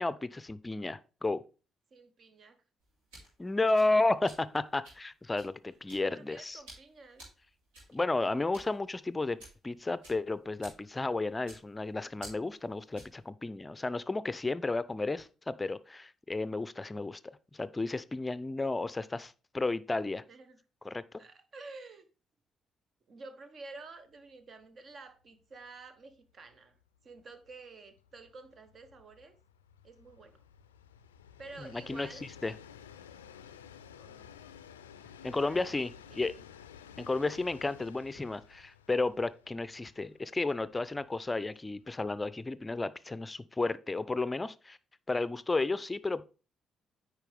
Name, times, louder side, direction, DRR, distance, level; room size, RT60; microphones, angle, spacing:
voice 1, 0.0-1.4 3.4-6.6 7.9-17.2 17.5-20.2 20.8-21.0 31.9-32.1 32.4-32.5 35.2-36.3 37.0-44.8 45.1-46.2, left 2 dB, 20° left, 0.5 m, -32 dB
voice 2, 1.9-2.6 6.0-7.2 20.3-20.6 21.2-22.1 23.1-29.3 29.8-30.4 31.4-32.3 34.0-34.5 35.3-35.8 36.1-36.4, right 3 dB, 45° right, 1.1 m, -51 dB
sound 1, 2.8-13.2, right 1 dB, 70° right, 3.4 m, -55 dB
Train, 24.1-24.3 24.6-24.7 25.0-42.4, left 8 dB, 85° left, 0.4 m, -54 dB
9.0 x 4.8 x 3.4 m
figure-of-eight pair, 45°, 0 cm